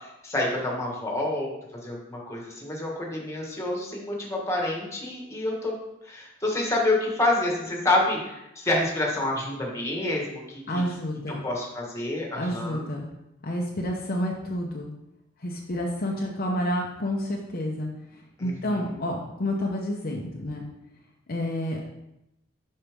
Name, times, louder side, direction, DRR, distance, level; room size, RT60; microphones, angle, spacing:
voice 1, 0.0-1.5 1.8-5.8 6.0-10.8 11.3-12.9 18.4-18.9, left 2 dB, 15° left, -1 dB, 1.5 m, -28 dB
voice 2, 10.7-11.4 12.4-13.1 13.4-14.9 15.4-20.6 21.3-21.8, left 1 dB, 50° left, -1 dB, 0.8 m, -29 dB
6.9 x 5.6 x 3.6 m, 0.87 s
head